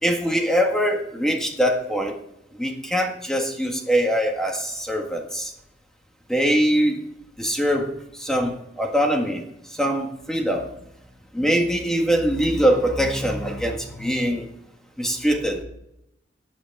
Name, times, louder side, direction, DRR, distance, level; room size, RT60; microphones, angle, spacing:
voice 1, 0.0-2.2 2.5-5.5 6.3-7.0 7.4-9.4 9.7-10.7 11.3-14.5 15.0-15.6, equal, 5° left, 2 dB, 1.7 m, -23 dB
14.0 x 8.5 x 3.5 m, 0.79 s
head